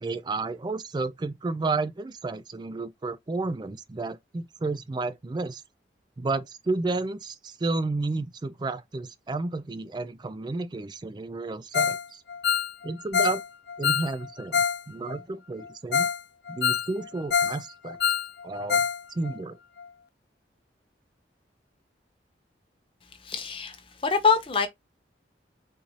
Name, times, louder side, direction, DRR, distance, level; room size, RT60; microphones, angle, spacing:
voice 1, 0.0-5.6 6.2-12.2 12.8-13.4 13.8-16.1 16.5-18.0 18.4-18.8 19.1-19.6, right 3 dB, 25° right, 0.3 m, -31 dB
Ringtone, 11.7-12.0 12.3-14.8 15.1-15.2 15.6-15.7 15.9-16.2 16.5-17.6 17.9-19.0 19.2-19.3 19.8-19.9, left 7 dB, 65° left, 0.4 m, -25 dB
voice 2, 23.0-24.7, left 5 dB, 30° left, 0.7 m, -25 dB
4.0 x 2.6 x 3.0 m
head